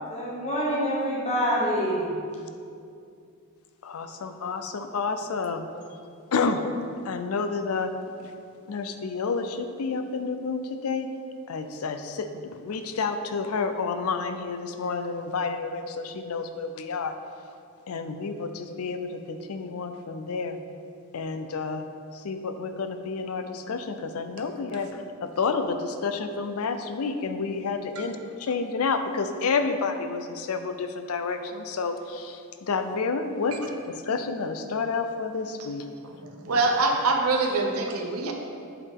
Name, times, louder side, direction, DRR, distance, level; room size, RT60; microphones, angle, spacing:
voice 1, 0.0-2.1, equal, 30° left, -4 dB, 1.0 m, -26 dB
voice 2, 3.8-5.6 6.3-6.6 7.0-7.9 8.7-11.1 11.5-17.1 17.9-20.6 21.1-21.8 22.1-35.8, left 4 dB, 75° left, 8 dB, 0.5 m, -30 dB
voice 3, 36.4-38.3, right 3 dB, 80° right, 1 dB, 0.8 m, -24 dB
7.9 x 4.7 x 3.7 m, 2.4 s
head